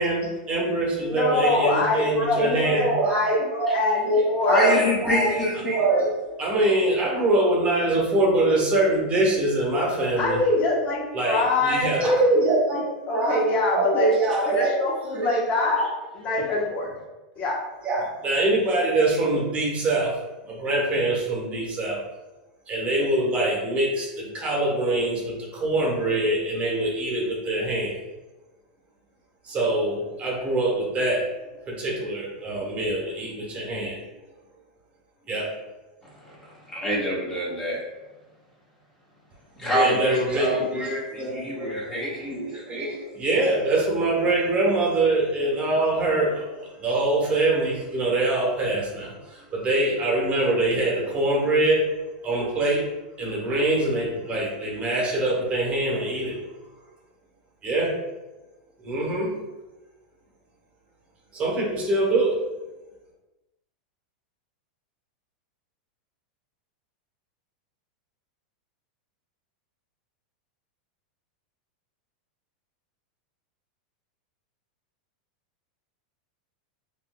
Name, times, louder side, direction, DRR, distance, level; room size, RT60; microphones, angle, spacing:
voice 1, 0.0-3.8 4.1-10.4 11.1-13.4 13.7-14.8 15.1-15.4 17.8-20.2 20.4-22.0 22.7-27.9 29.4-31.3 31.7-34.0 35.3-35.5 39.6-51.9 52.2-52.9 53.2-56.4 57.6-57.9 58.8-59.3 61.3-62.4, right 2 dB, 30° right, -3 dB, 1.1 m, -24 dB
voice 2, 1.0-2.4 2.7-3.4 3.7-4.7 10.2-12.3 13.1-14.1 14.5-15.9 16.1-16.9 17.4-17.6, left 2 dB, 35° left, -2 dB, 1.0 m, -24 dB
voice 3, 4.5-5.6 36.2-36.4 36.6-37.8 39.6-42.3, equal, 15° left, -6 dB, 1.2 m, -26 dB
4.7 x 2.7 x 2.2 m, 1.1 s
hypercardioid pair, 125°, 5 cm